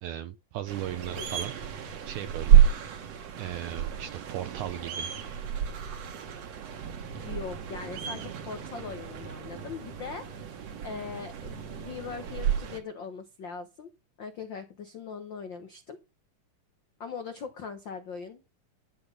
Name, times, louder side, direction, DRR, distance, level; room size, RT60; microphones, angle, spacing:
voice 1, 0.0-1.5 2.1-2.6 3.4-5.2, right 12 dB, 75° right, 2.0 m, -37 dB
sound 1, 0.7-12.8, right 9 dB, 55° right, 2.4 m, -29 dB
voice 2, 7.1-13.9 14.2-16.0 17.0-18.4, left 5 dB, 75° left, 1.0 m, -40 dB
12.0 x 6.1 x 5.5 m
omnidirectional pair, 3.8 m